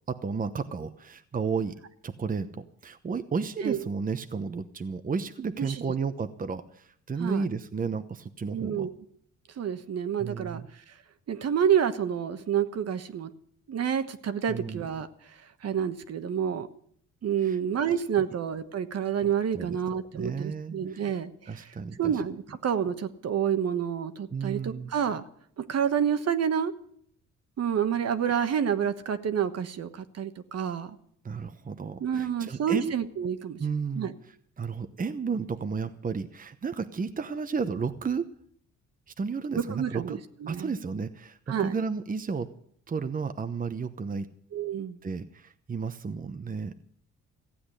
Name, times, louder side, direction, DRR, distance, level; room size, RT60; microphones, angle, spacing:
voice 1, 0.1-8.9 10.2-10.6 14.5-14.9 17.4-17.6 19.2-19.3 19.5-19.8 20.1-21.1 21.5-22.2 24.3-24.9 31.2-32.9 33.6-38.3 39.2-40.2 40.5-42.5 42.9-44.3 45.0-46.7, right 5 dB, 30° right, 9 dB, 1.0 m, -33 dB
voice 2, 8.5-8.9 9.6-10.6 11.3-13.3 13.7-15.1 15.6-16.7 17.2-21.7 22.0-25.2 25.6-26.7 27.6-31.0 32.0-33.6 34.0-34.1 39.5-40.7 41.5-41.8 44.5-45.0, right 8 dB, 55° right, 10 dB, 1.3 m, -28 dB
15.5 x 8.6 x 9.9 m, 0.66 s
cardioid pair, 90°, 30 cm